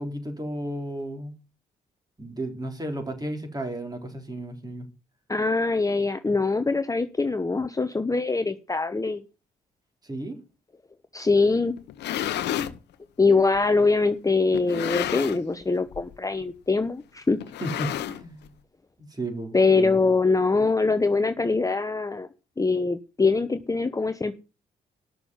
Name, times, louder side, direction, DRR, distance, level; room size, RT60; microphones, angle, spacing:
voice 1, 0.0-1.3 2.2-4.9 10.0-10.4 17.6-18.5 19.0-20.0, right 1 dB, 20° right, 4.0 m, -33 dB
voice 2, 5.3-9.2 11.1-11.7 13.2-17.4 19.5-22.3 22.6-24.3, left 3 dB, 20° left, 0.9 m, -23 dB
sound 1, 11.8-12.8 13.5-13.6 14.5-15.6 15.9-16.2 16.4-16.5 17.4-18.5, left 11 dB, 75° left, 1.0 m, -31 dB
10.0 x 6.8 x 7.2 m
supercardioid pair, 60°, 18 cm